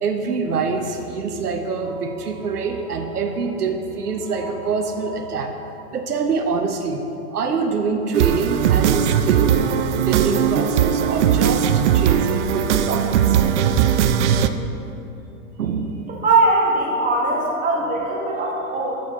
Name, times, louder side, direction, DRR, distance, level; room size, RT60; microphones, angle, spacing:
voice 1, 0.0-7.0 7.3-9.6 9.9-13.4 15.6-16.0, right 4 dB, 85° right, 5 dB, 0.8 m, -25 dB
sound 1, 8.1-14.5, right 9 dB, 50° right, 0.5 m, -19 dB
voice 2, 16.1-19.0, right 2 dB, 20° right, -4 dB, 1.6 m, -20 dB
7.7 x 6.3 x 4.2 m, 2.8 s
hypercardioid pair, 120°, 45 cm